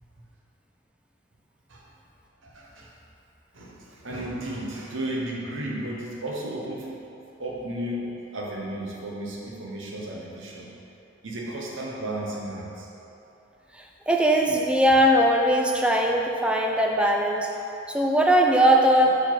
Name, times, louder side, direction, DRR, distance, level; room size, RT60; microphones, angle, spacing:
voice 1, 2.4-2.9 3.5-6.9 7.4-10.7 11.2-12.9, right 1 dB, 70° right, -3 dB, 1.0 m, -34 dB
voice 2, 13.7-17.5 17.9-19.1, equal, 5° right, 0 dB, 0.4 m, -20 dB
6.0 x 4.8 x 4.4 m, 2.9 s
head